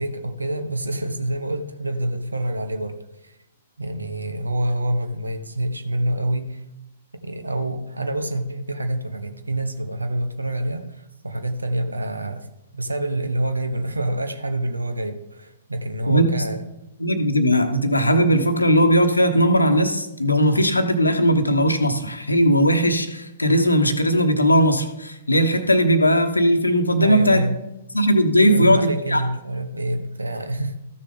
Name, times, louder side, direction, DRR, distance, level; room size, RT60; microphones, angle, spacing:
voice 1, 0.0-3.0 3.2-3.4 3.8-6.6 7.2-12.5 12.7-16.6 27.0-27.6 28.5-30.8, right 1 dB, 80° right, 8 dB, 1.1 m, -27 dB
voice 2, 16.1-16.4 17.0-27.4 27.9-29.2, equal, 80° left, 8 dB, 1.0 m, -18 dB
14.0 x 6.6 x 3.7 m, 0.93 s
figure-of-eight pair, 115°, 0 cm